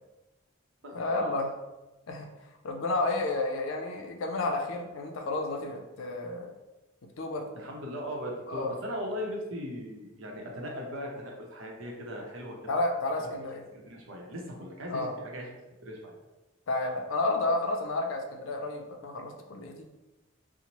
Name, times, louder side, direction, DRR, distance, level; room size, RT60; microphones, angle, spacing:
voice 1, 0.9-1.5 2.1-2.3 2.6-6.5 7.2-7.5 8.5-8.8 12.7-13.6 14.9-15.1 16.7-19.9, left 2 dB, 85° left, 3 dB, 0.4 m, -31 dB
voice 2, 7.5-12.6 13.7-15.4 15.8-16.1, equal, 80° right, -1 dB, 0.7 m, -38 dB
2.9 x 2.0 x 2.8 m, 1.1 s
head